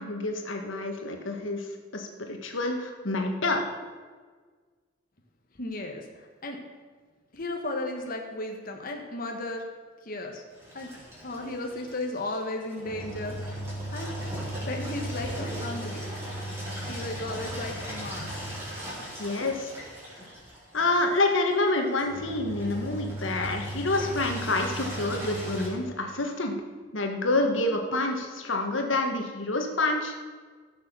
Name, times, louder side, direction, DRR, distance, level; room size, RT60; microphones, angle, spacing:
voice 1, 0.0-3.6 19.2-19.7 20.7-26.5 26.9-30.1, left 2 dB, 90° left, 3 dB, 1.7 m, -28 dB
voice 2, 5.6-6.6 7.3-9.6 10.0-10.4 10.7-10.9 11.2-13.5 13.9-14.2 14.6-16.0 16.9-18.3, left 2 dB, 50° left, 2 dB, 1.3 m, -35 dB
Engine, 10.5-25.7, right 1 dB, 15° right, 4.0 m, -37 dB
15.0 x 6.8 x 6.8 m, 1.5 s
head